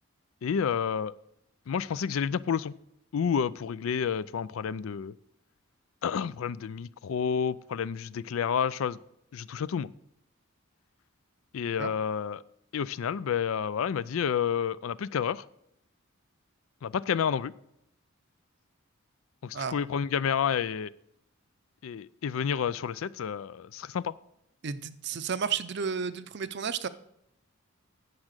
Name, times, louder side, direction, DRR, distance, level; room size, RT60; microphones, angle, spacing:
voice 1, 0.4-1.1 1.7-2.7 3.1-5.2 6.0-9.0 9.3-9.9 11.5-12.4 12.7-15.4 16.8-17.5 19.4-20.9 21.8-24.1, left 7 dB, 75° left, 19 dB, 0.4 m, -30 dB
voice 2, 24.6-26.9, right 6 dB, 55° right, 13 dB, 0.6 m, -32 dB
9.7 x 7.5 x 6.5 m, 0.78 s
head